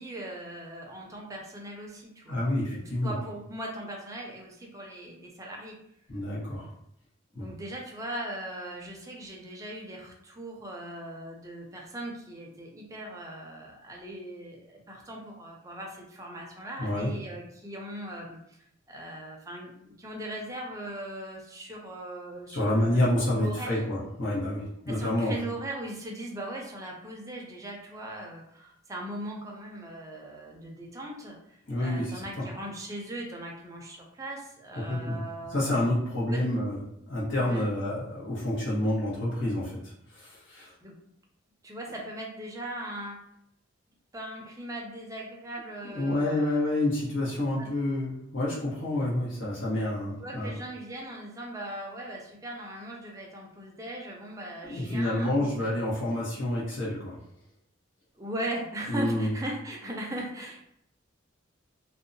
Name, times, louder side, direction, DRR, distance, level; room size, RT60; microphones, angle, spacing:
voice 1, 0.0-2.4 3.0-5.8 7.3-18.6 18.9-23.0 23.3-23.8 24.9-35.6 36.3-36.4 37.4-37.6 40.8-41.0 41.6-43.2 44.1-46.6 47.6-47.7 50.2-55.5 58.2-60.6, right 1 dB, 15° right, -1 dB, 0.4 m, -39 dB
voice 2, 2.3-3.1 6.1-6.7 7.3-7.5 16.8-17.1 22.5-25.4 31.7-32.4 34.7-35.2 35.5-36.8 37.1-40.7 45.8-50.5 54.6-57.2 58.9-59.3, left 1 dB, 75° left, -6 dB, 1.1 m, -28 dB
2.6 x 2.2 x 2.6 m, 0.75 s
head